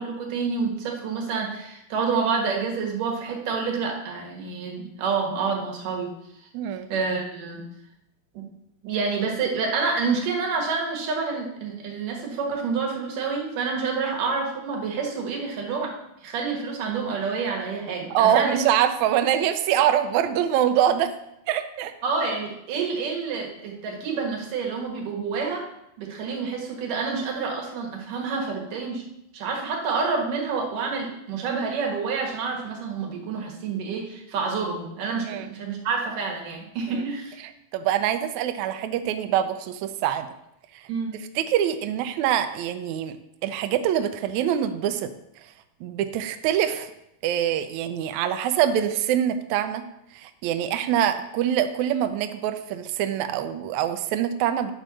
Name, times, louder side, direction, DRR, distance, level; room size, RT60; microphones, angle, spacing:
voice 1, 0.0-6.1 6.9-7.6 8.3-8.5 8.8-15.9 16.2-18.6 22.0-25.7 26.0-29.0 29.3-37.4 40.9-41.2, right 5 dB, 70° right, 0 dB, 3.1 m, -28 dB
voice 2, 6.5-6.9 14.0-14.1 18.1-21.1 21.5-21.9 35.3-35.5 36.9-37.0 37.7-40.3 40.7-40.9 41.3-43.2 43.4-45.1 45.4-45.5 45.8-46.9 47.2-49.8 50.1-54.7, right 10 dB, 90° right, 9 dB, 1.6 m, -24 dB
10.0 x 4.5 x 6.2 m, 0.83 s
omnidirectional pair, 4.1 m